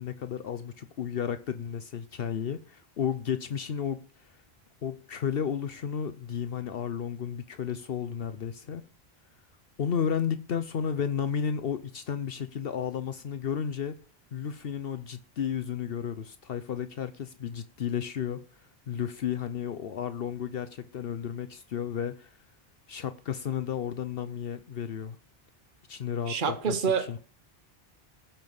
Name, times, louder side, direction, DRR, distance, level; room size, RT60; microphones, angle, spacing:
voice 1, 0.0-4.0 4.8-8.8 9.8-14.0 14.3-18.4 18.9-22.3 22.9-25.2 25.9-27.2, left 8 dB, 70° left, 0.9 m, -33 dB
voice 2, 26.3-27.2, right 6 dB, 55° right, 1.3 m, -27 dB
16.0 x 5.8 x 7.0 m
omnidirectional pair, 1.0 m